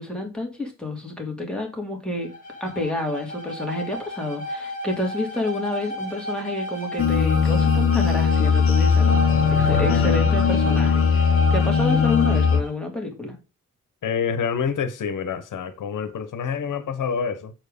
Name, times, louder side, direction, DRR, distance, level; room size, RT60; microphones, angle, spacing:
voice 1, 0.0-2.3 2.6-13.4, left 1 dB, 5° left, 2.5 m, -29 dB
Bowed string instrument, 2.2-12.7, equal, 25° left, 2.0 m, -32 dB
sound 1, 7.0-12.6, left 6 dB, 45° left, 0.7 m, -19 dB
voice 2, 14.0-17.5, left 6 dB, 80° left, 1.0 m, -27 dB
7.6 x 4.6 x 5.3 m
wide cardioid pair, 125°, 31 cm